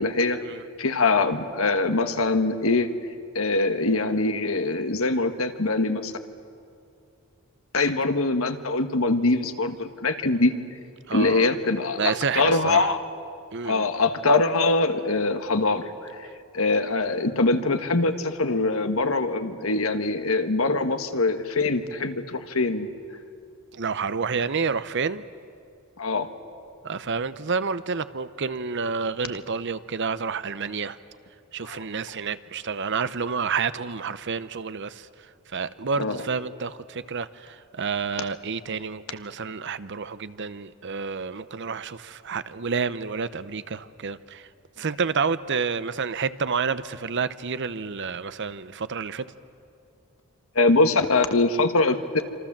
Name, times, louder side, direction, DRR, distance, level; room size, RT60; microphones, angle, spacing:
voice 1, 0.0-0.4 0.8-2.9 3.3-6.1 7.7-10.5 11.1-13.0 13.6-16.3 16.5-22.9 26.0-26.3 31.7-31.8 36.0-36.2 50.5-52.2, left 3 dB, 65° left, 8 dB, 1.5 m, -23 dB
voice 2, 11.1-11.5 12.0-12.9 13.5-13.9 23.7-25.2 26.8-31.0 31.5-35.1 35.5-44.5 44.8-49.3, right 5 dB, 55° right, 14 dB, 0.8 m, -29 dB
27.0 x 26.5 x 7.4 m, 2.5 s
head